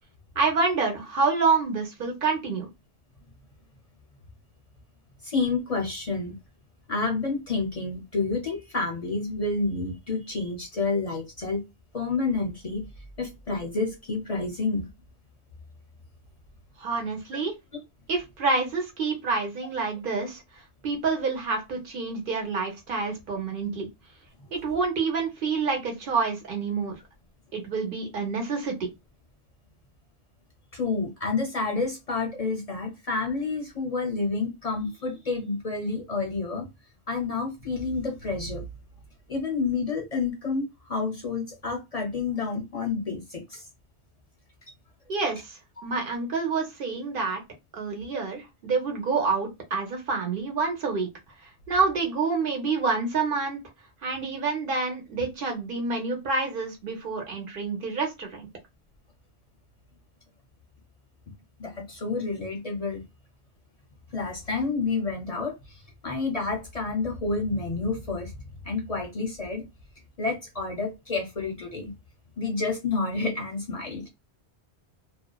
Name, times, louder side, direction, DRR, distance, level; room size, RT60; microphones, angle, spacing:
voice 1, 0.4-2.7 16.8-17.5 18.1-20.4 20.8-23.9 24.5-26.9 27.5-28.7 45.1-47.4 47.7-51.1 51.7-53.6 54.0-58.5, right 4 dB, 55° right, 1.0 m, -27 dB
voice 2, 5.2-6.4 6.9-11.6 11.9-12.9 13.2-14.9 30.7-36.7 37.1-38.6 39.3-43.7 45.8-45.9 61.6-63.0 64.1-68.3 68.6-69.6 70.2-71.9 72.4-74.0, left 3 dB, 40° left, 0.6 m, -29 dB
2.7 x 2.1 x 2.2 m
omnidirectional pair, 1.1 m